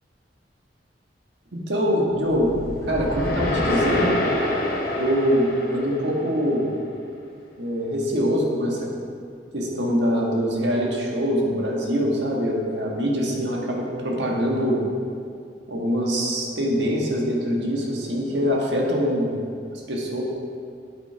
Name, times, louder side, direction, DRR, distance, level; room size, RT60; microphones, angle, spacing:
voice 1, 1.5-2.6 2.9-4.2 4.9-6.7 7.6-8.9 9.5-14.8 15.7-19.3 19.7-20.2, equal, 75° right, -2 dB, 1.6 m, -23 dB
sound 1, 2.2-6.6, left 1 dB, 55° left, 1.3 m, -27 dB
8.7 x 8.7 x 3.4 m, 2.3 s
head